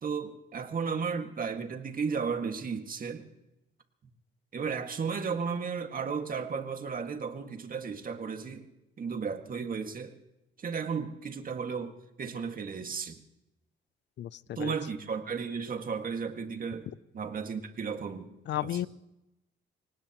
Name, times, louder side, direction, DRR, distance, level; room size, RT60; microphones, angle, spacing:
voice 1, 0.0-3.3 4.5-8.7 9.0-10.1 10.6-13.2 14.6-16.9 17.1-18.3 18.6-18.7, right 5 dB, 45° right, 6 dB, 1.9 m, -34 dB
voice 2, 14.2-14.7 18.5-18.9, left 12 dB, 65° left, 20 dB, 0.5 m, -33 dB
24.0 x 19.0 x 3.0 m, 0.92 s
cardioid pair, 90°, 20 cm